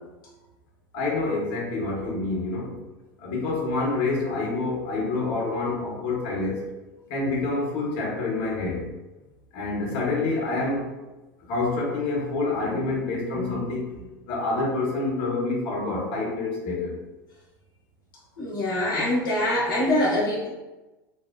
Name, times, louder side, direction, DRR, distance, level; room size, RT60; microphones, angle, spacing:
voice 1, 0.9-2.7 3.2-6.7 7.1-8.9 9.5-10.9 11.5-17.0, left 3 dB, 50° left, -3 dB, 0.9 m, -27 dB
voice 2, 18.4-20.5, left 1 dB, 75° left, -7 dB, 0.8 m, -24 dB
2.7 x 2.0 x 2.4 m, 1.1 s
hypercardioid pair, 90°, 11 cm